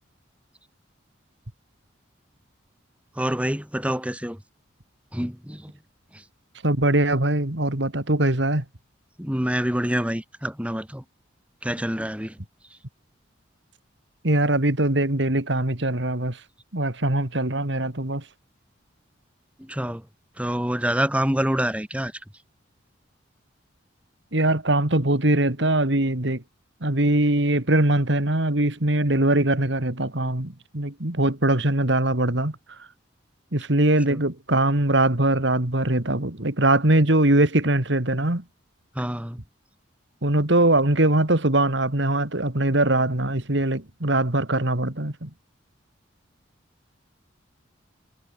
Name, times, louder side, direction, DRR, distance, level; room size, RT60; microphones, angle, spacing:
voice 1, 3.1-4.4 5.1-5.7 6.1-6.2 9.2-11.0 11.6-12.4 19.6-20.0 20.4-22.1 34.1-34.2 38.9-39.4, equal, 5° right, 3.2 m, -26 dB
voice 2, 6.6-8.6 14.2-16.4 16.7-18.2 24.3-26.4 26.8-32.6 33.5-38.4 40.2-45.3, right 1 dB, 65° right, 2.6 m, -22 dB
head